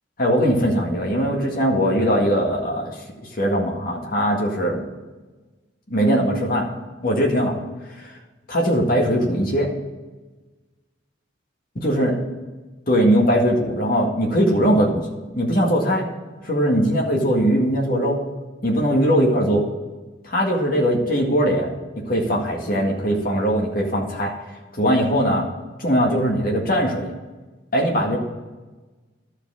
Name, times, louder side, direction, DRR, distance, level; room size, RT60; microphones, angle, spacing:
voice 1, 0.2-3.0 3.3-4.8 5.9-6.7 7.0-7.6 8.0-8.1 8.5-9.7 11.7-12.1 12.9-15.1 15.3-16.0 16.4-18.2 18.6-19.6 20.2-21.7 22.0-24.3 24.8-25.5 25.8-27.1 27.7-28.2, equal, 45° left, -1 dB, 1.8 m, -20 dB
12.5 x 5.0 x 6.3 m, 1.2 s
head